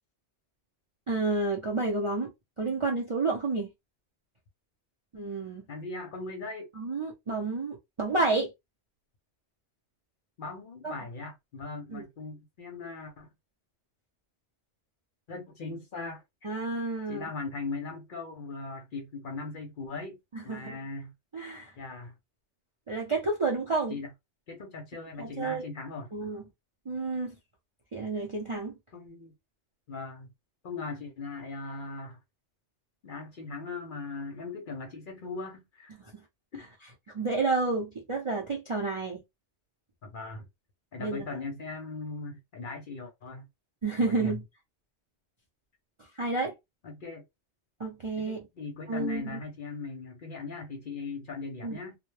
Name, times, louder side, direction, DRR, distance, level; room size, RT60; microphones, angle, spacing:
voice 1, 1.1-2.3 2.6-3.7 5.1-5.6 6.8-8.5 10.8-10.9 11.9-12.0 16.4-17.3 20.3-20.8 21.3-21.7 22.9-24.0 25.2-25.6 26.1-26.4 26.9-27.3 27.9-28.7 37.1-39.2 41.0-41.2 43.8-44.4 46.2-46.5 47.8-48.5 48.9-49.4 51.6-51.8, right 3 dB, 45° right, 0.4 m, -30 dB
voice 2, 5.7-6.7 10.4-13.3 15.3-16.5 17.1-20.2 20.4-21.1 21.8-22.1 23.9-24.1 24.5-26.1 28.9-29.3 29.9-30.3 30.6-32.2 33.0-35.9 36.5-36.7 40.0-40.5 40.9-43.5 44.0-44.3 46.8-47.2 48.2-52.0, left 3 dB, 55° left, 0.6 m, -39 dB
2.1 x 2.1 x 3.1 m
omnidirectional pair, 1.2 m